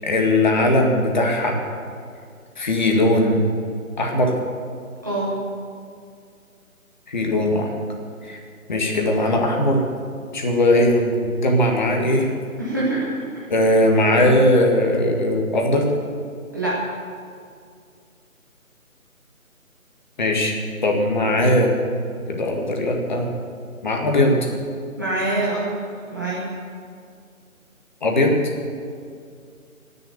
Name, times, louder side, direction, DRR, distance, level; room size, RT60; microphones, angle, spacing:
voice 1, 0.0-1.6 2.6-3.4 4.0-4.3 7.1-7.7 8.2-8.4 8.7-9.8 10.3-12.3 13.5-15.9 20.2-20.5 20.8-21.7 22.3-23.3 23.8-24.5 28.0-28.4, left 1 dB, 35° left, 1 dB, 1.8 m, -19 dB
voice 2, 5.0-5.3 12.6-13.4 16.5-16.8 25.0-25.7 26.1-26.4, right 2 dB, 15° right, -7 dB, 0.9 m, -25 dB
18.0 x 6.9 x 8.1 m, 2.3 s
figure-of-eight pair, 155°, 42 cm